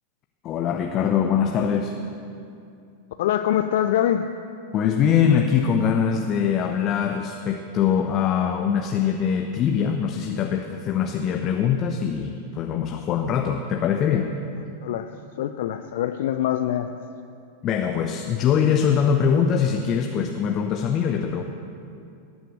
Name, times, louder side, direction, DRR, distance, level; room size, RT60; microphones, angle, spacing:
voice 1, 0.4-2.0 4.7-14.3 17.6-21.4, left 7 dB, 35° left, 4 dB, 0.9 m, -22 dB
voice 2, 3.2-4.3 14.8-15.1 15.4-16.9, left 11 dB, 55° left, 8 dB, 0.5 m, -24 dB
19.5 x 9.2 x 6.7 m, 2.5 s
figure-of-eight pair, 90°, 0 cm